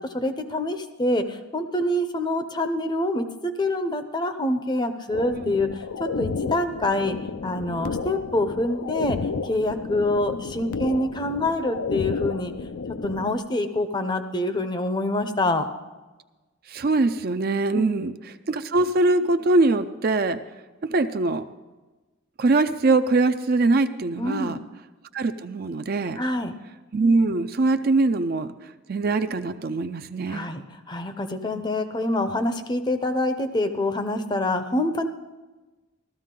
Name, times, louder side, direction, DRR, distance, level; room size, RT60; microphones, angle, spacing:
voice 1, 0.1-7.2 7.4-9.2 9.4-12.5 13.0-15.7 17.7-18.1 24.2-24.6 26.2-26.6 30.3-35.1, left 1 dB, 20° left, 9 dB, 0.6 m, -26 dB
sound 1, 5.1-13.3, left 4 dB, 80° left, 0.5 m, -32 dB
voice 2, 16.7-20.4 20.8-21.4 22.4-24.6 25.1-26.2 26.9-28.5 28.9-30.5 31.5-31.7, right 3 dB, 45° right, 9 dB, 0.4 m, -22 dB
15.0 x 13.0 x 3.8 m, 1.2 s
head